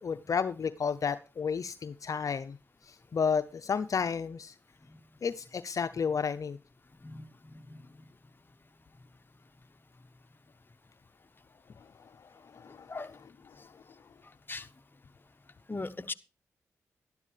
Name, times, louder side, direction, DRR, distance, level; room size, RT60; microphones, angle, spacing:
voice 1, 0.0-2.6 2.9-4.5 5.2-6.6 12.5-13.3, left 6 dB, 60° left, 12 dB, 0.6 m, -32 dB
voice 2, 15.7-16.1, left 3 dB, 30° left, 10 dB, 1.0 m, -38 dB
12.0 x 11.0 x 3.3 m, 0.32 s
supercardioid pair, 45°, 7 cm